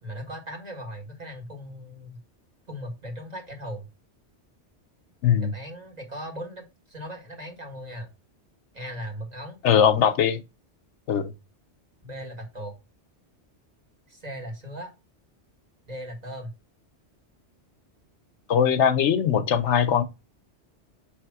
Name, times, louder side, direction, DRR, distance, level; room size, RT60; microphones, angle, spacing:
voice 1, 0.0-2.2 2.7-3.9 5.4-8.1 8.7-9.6 12.0-12.7 14.1-14.9 15.9-16.5, equal, 35° right, 2.0 m, -38 dB
voice 2, 5.2-5.5 9.6-10.4 11.1-11.3 18.5-20.0, left 8 dB, 75° left, 1.0 m, -20 dB
6.2 x 3.5 x 4.6 m
omnidirectional pair, 1.2 m